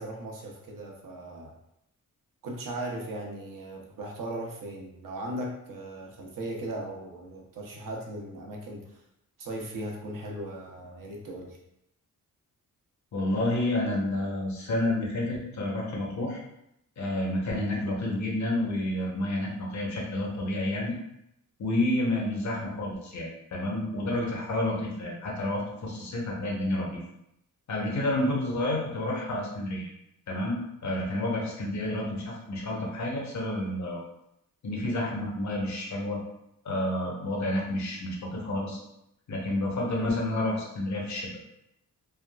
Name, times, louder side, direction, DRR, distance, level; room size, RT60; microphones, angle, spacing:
voice 1, 0.0-1.5 2.4-8.8 9.4-11.6, right 1 dB, 70° right, -1 dB, 0.8 m, -38 dB
voice 2, 13.1-16.4 17.0-21.0 21.6-27.0 27.7-29.9 30.3-34.0 34.6-36.2 36.6-38.8 39.3-41.3, left 1 dB, 55° left, -2 dB, 0.9 m, -30 dB
3.4 x 2.2 x 2.3 m, 0.81 s
cardioid pair, 90°, 34 cm